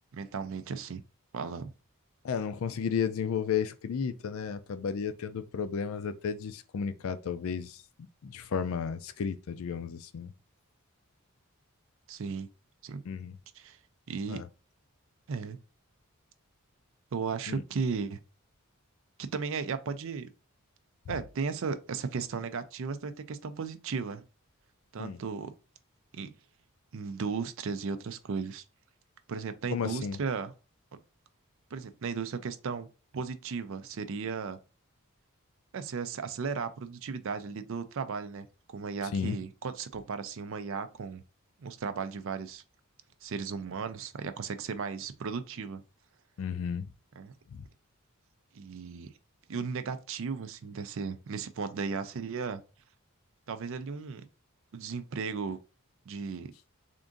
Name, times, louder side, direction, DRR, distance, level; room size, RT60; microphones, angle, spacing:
voice 1, 0.1-1.0 1.3-1.7 12.1-12.5 12.8-13.0 13.5-13.8 14.1-14.4 15.3-15.6 17.1-18.2 19.2-20.3 21.1-24.2 24.9-25.5 26.1-26.3 26.9-28.6 29.3-30.5 31.7-32.9 33.1-34.6 35.7-38.5 38.7-41.2 41.6-42.6 43.2-45.8 47.2-47.3 48.5-49.1 49.5-52.6 53.5-54.3 54.7-55.6 56.1-56.5, right 5 dB, 60° right, 0.4 m, -35 dB
voice 2, 2.2-7.8 8.2-10.3 13.1-13.3 14.3-14.4 17.5-17.6 25.0-25.2 29.7-30.2 39.1-39.4 46.4-46.9, left 6 dB, 65° left, 0.4 m, -33 dB
3.6 x 2.6 x 3.7 m
head